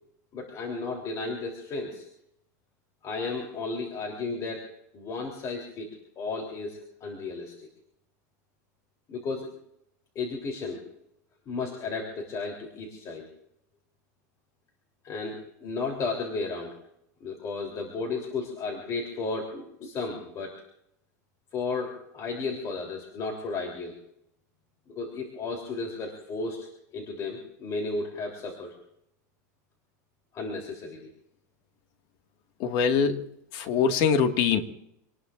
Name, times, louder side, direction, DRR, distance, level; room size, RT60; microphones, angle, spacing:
voice 1, 0.3-2.1 3.0-5.9 6.2-7.7 9.1-9.5 10.1-10.8 11.5-13.2 15.0-16.8 17.2-20.6 21.5-23.9 24.9-26.7 26.9-28.7 30.3-31.1, left 3 dB, 35° left, 1 dB, 3.4 m, -34 dB
voice 2, 32.6-33.2 33.5-34.6, left 6 dB, 55° left, 6 dB, 1.9 m, -23 dB
27.5 x 19.5 x 2.5 m, 0.77 s
supercardioid pair, 125°, 9 cm